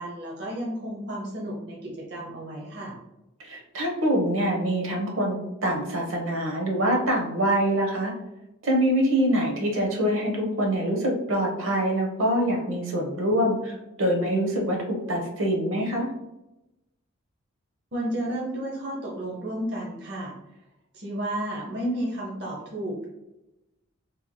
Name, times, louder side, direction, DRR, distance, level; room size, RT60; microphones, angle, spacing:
voice 1, 0.0-2.9 17.9-20.3 20.9-23.1, right 1 dB, 55° right, -3 dB, 0.7 m, -32 dB
voice 2, 3.4-8.1 8.6-16.1, equal, 80° right, 0 dB, 0.9 m, -25 dB
3.4 x 3.0 x 2.2 m, 0.94 s
head